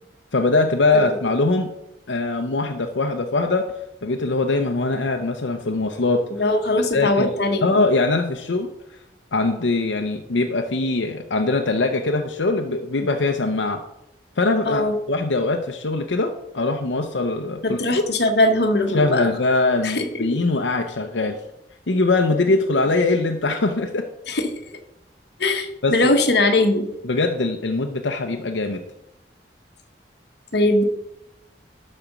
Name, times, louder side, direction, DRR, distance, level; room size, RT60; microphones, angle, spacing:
voice 1, 0.3-1.7 2.1-3.7 4.0-6.2 6.9-7.3 7.6-8.7 9.3-13.8 14.4-14.8 15.1-18.0 18.9-21.4 21.9-24.1 25.8-26.2 27.0-28.8, left 3 dB, 85° left, 4 dB, 0.7 m, -22 dB
voice 2, 6.4-7.8 14.7-15.0 17.6-19.2 19.8-20.2 24.3-24.5 25.4-26.9 30.5-30.8, left 2 dB, 65° left, 5 dB, 1.2 m, -20 dB
12.0 x 4.3 x 6.1 m, 0.87 s
head